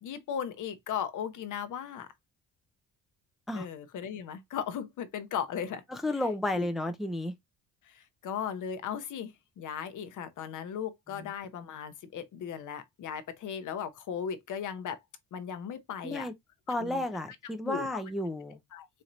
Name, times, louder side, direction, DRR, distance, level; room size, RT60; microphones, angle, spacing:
voice 1, 0.0-2.1 3.5-5.8 6.2-6.3 6.6-6.7 7.8-15.0 15.3-16.3 16.8-17.1 17.6-18.0 18.7-18.9, left 8 dB, 60° left, 0.7 m, -37 dB
voice 2, 5.9-7.3 11.2-11.3 16.0-16.3 16.7-18.6, left 1 dB, ahead, 0.4 m, -32 dB
4.3 x 2.6 x 3.0 m
cardioid pair, 130°, 34 cm